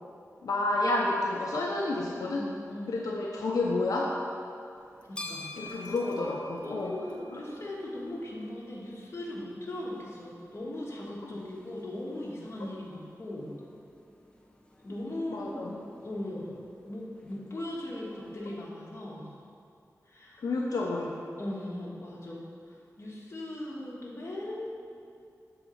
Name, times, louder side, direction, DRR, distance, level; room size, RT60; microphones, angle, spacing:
voice 1, 0.4-2.5 2.9-4.2 5.6-7.0 7.3-7.4 11.2-11.4 15.3-15.7 20.4-21.2, left 2 dB, 85° left, -2 dB, 0.6 m, -30 dB
voice 2, 2.2-3.0 5.1-5.5 6.6-13.5 14.8-16.5 16.8-19.4 20.1-20.5 20.8-20.9 21.4-24.7, left 1 dB, 50° left, -4 dB, 1.7 m, -39 dB
sound 1, 4.8-18.6, left 2 dB, 15° left, 0.7 m, -50 dB
7.8 x 4.0 x 6.4 m, 2.5 s
wide cardioid pair, 70°, 6 cm